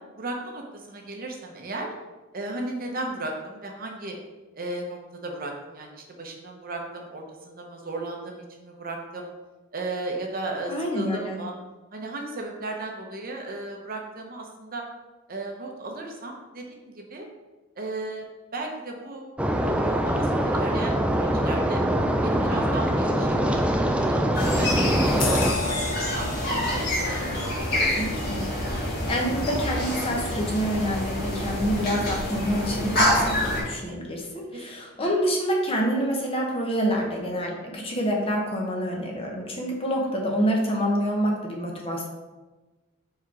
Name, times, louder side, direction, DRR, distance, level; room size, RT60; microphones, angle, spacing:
voice 1, 0.2-1.9 2.3-4.2 4.5-9.3 9.7-11.5 11.9-14.8 15.3-17.3 17.8-18.2 18.5-19.3 19.6-21.8 22.2-23.7 24.0-24.7 25.1-27.8 34.5-35.1, right 2 dB, 45° right, 1 dB, 0.9 m, -35 dB
voice 2, 10.7-11.4 27.9-28.4 28.8-42.1, equal, 25° left, 0 dB, 1.0 m, -27 dB
sound 1, 19.4-25.5, right 1 dB, 5° right, 0.3 m, -23 dB
sound 2, 24.3-33.6, left 1 dB, 50° left, 1.9 m, -27 dB
sound 3, 25.2-30.2 30.6-30.8, left 4 dB, 65° left, 1.1 m, -36 dB
4.8 x 4.4 x 4.7 m, 1.2 s
head